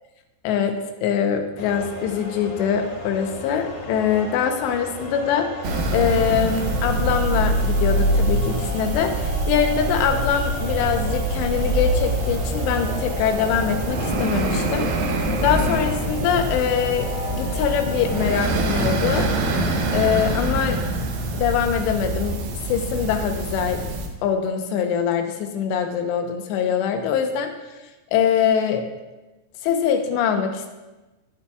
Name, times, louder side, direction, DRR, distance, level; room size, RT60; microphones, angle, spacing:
voice 1, 0.4-5.5 5.9-19.3 19.9-20.8 21.3-22.4 22.7-23.8 24.2-27.5 28.1-28.8 29.6-30.7, left 7 dB, 80° left, 5 dB, 3.0 m, -23 dB
sound 1, 1.6-20.0, left 3 dB, 55° left, 3.5 m, -34 dB
sound 2, 5.6-24.1, right 2 dB, 70° right, 2.7 m, -24 dB
20.5 x 7.3 x 2.4 m, 1.1 s
omnidirectional pair, 5.1 m